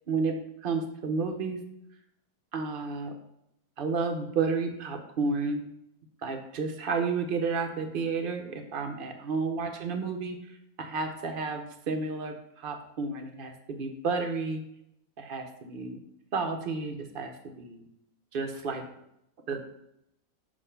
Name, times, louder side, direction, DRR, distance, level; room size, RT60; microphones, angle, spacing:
voice 1, 0.1-1.6 2.5-3.1 3.8-5.6 6.2-10.4 10.8-14.6 15.2-16.0 16.3-17.3 17.6-17.9 18.3-18.8 19.5-19.7, right 4 dB, 70° right, 4 dB, 0.5 m, -31 dB
7.3 x 2.6 x 5.5 m, 0.79 s
omnidirectional pair, 1.8 m